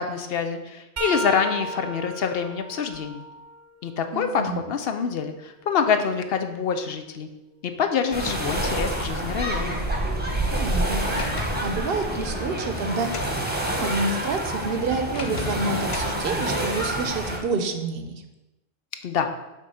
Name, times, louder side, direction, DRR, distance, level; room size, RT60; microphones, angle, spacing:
voice 1, 0.0-3.3 3.8-7.3 7.6-9.8 19.0-19.3, left 6 dB, 70° left, 7 dB, 0.8 m, -26 dB
sound 1, 1.0-4.7 5.2-7.2 10.1-10.3 11.5-11.7 13.0-13.1, right 1 dB, 50° right, 0.4 m, -36 dB
voice 2, 4.1-4.6 10.5-11.3 11.6-13.1 13.8-18.2, right 3 dB, 65° right, 7 dB, 0.8 m, -28 dB
sound 2, 8.1-17.4, right 1 dB, 10° right, 1.0 m, -28 dB
Sliding door, 11.1-13.4 15.1-16.2, left 3 dB, 35° left, 0.6 m, -34 dB
6.2 x 3.8 x 5.5 m, 1.0 s
omnidirectional pair, 1.1 m